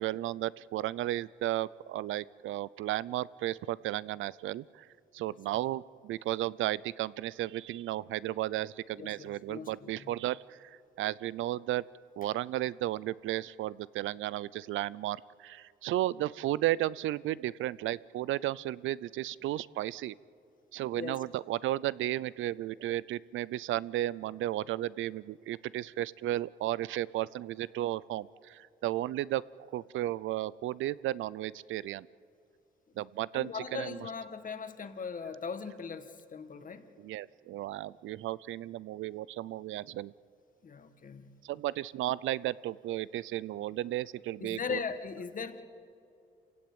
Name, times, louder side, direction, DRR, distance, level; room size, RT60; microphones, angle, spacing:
voice 1, 0.0-4.9 5.1-10.7 11.0-11.8 12.2-20.1 20.7-29.4 29.7-32.1 33.0-34.0 37.0-40.1 41.4-44.8, right 14 dB, 80° right, 20 dB, 0.5 m, -34 dB
voice 2, 9.0-10.2 21.0-21.2 33.3-36.9 40.6-41.3 44.4-45.6, left 5 dB, 45° left, 9 dB, 1.8 m, -39 dB
28.0 x 16.5 x 8.8 m, 2.5 s
cardioid pair, 90°, 20 cm